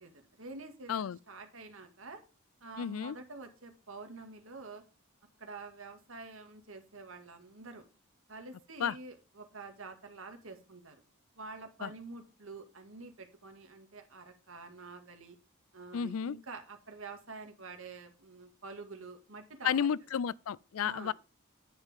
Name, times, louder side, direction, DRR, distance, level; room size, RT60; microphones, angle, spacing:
voice 1, 0.0-2.2 2.6-4.8 5.4-7.9 8.3-11.0 11.3-15.4 15.7-19.9 20.8-21.1, right 3 dB, 65° right, 2.1 m, -48 dB
voice 2, 2.8-3.2 8.8-9.0 11.8-11.9 15.9-16.4 19.6-21.1, left 8 dB, 75° left, 0.4 m, -32 dB
9.9 x 8.2 x 3.6 m
head